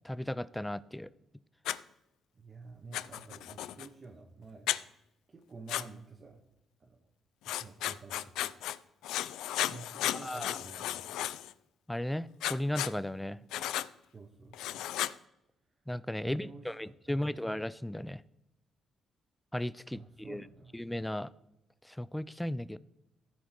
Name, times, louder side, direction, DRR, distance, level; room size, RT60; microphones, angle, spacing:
voice 1, 0.0-1.1 10.2-10.6 11.9-13.4 15.9-18.2 19.5-20.4 20.7-21.3 21.8-22.8, left 1 dB, 5° left, 18 dB, 0.4 m, -35 dB
Writing, 1.7-1.8 2.9-3.9 4.7-4.8 5.7-5.9 7.5-8.8 9.0-11.5 12.4-12.9 13.5-13.9 14.5-15.1, left 13 dB, 90° left, 0.3 m, -34 dB
voice 2, 2.3-4.7 5.3-6.4 6.8-7.0 7.4-8.3 9.7-11.2 14.1-14.9 16.2-17.4 19.9-20.8, right 4 dB, 40° right, -1 dB, 1.4 m, -50 dB
15.0 x 5.1 x 4.6 m, 0.88 s
cardioid pair, 90°, 0 cm